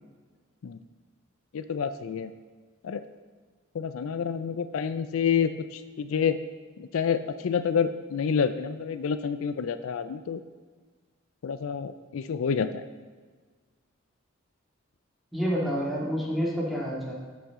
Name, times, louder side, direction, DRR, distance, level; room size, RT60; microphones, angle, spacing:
voice 1, 1.5-2.3 2.8-3.0 3.7-6.4 6.8-10.4 11.4-12.8, left 6 dB, 75° left, 11 dB, 0.4 m, -28 dB
voice 2, 15.3-17.1, equal, ahead, -5 dB, 2.0 m, -28 dB
13.5 x 5.8 x 3.7 m, 1.5 s
head